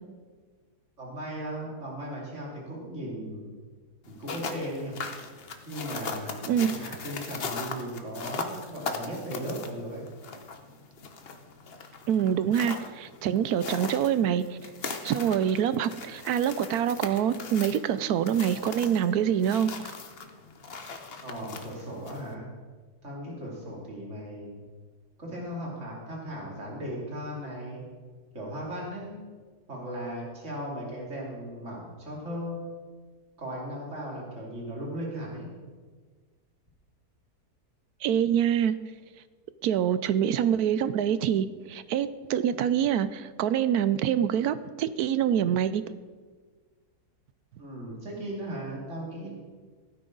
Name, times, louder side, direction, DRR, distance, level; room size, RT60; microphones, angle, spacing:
voice 1, 1.0-3.5 4.1-4.9 5.7-10.0 21.2-22.4 23.0-24.6 25.2-27.8 28.3-29.1 29.7-32.6 33.4-35.5 47.6-49.3, equal, 45° right, -3 dB, 3.2 m, -37 dB
sound 1, 4.1-22.3, left 4 dB, 45° left, 1.0 m, -39 dB
voice 2, 12.1-19.7 38.0-38.8 39.6-45.8, right 9 dB, 75° right, 14 dB, 1.1 m, -26 dB
16.0 x 9.7 x 3.9 m, 1.5 s
omnidirectional pair, 1.7 m